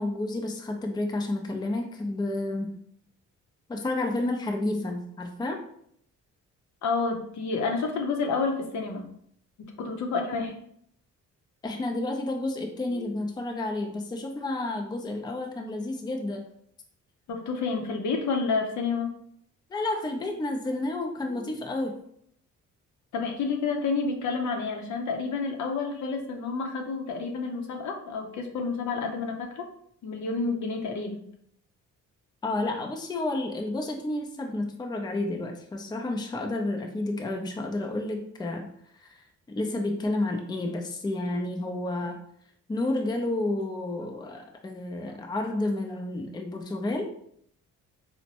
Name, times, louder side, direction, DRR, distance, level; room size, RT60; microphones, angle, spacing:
voice 1, 0.0-2.8 3.7-5.6 11.6-16.4 19.7-21.9 32.4-38.7 39.0-42.2 42.7-47.1, left 2 dB, 15° left, 2 dB, 0.5 m, -30 dB
voice 2, 6.8-9.0 9.8-10.6 17.3-19.1 23.1-29.7 30.0-31.2, left 4 dB, 70° left, 3 dB, 0.7 m, -29 dB
4.2 x 2.1 x 2.8 m, 0.68 s
cardioid pair, 90°, 30 cm